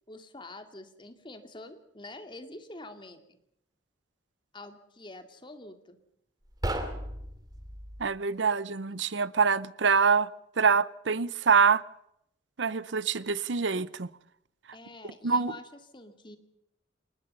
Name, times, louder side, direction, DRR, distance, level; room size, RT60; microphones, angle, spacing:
voice 1, 0.1-3.4 4.5-6.0 14.7-16.4, left 2 dB, 25° left, 2.5 m, -46 dB
sound 1, 6.4-8.1, right 1 dB, 20° right, 2.7 m, -35 dB
voice 2, 8.0-10.3 10.6-11.8 12.6-14.1 15.2-15.5, right 5 dB, 75° right, 0.8 m, -25 dB
26.5 x 20.0 x 5.6 m
head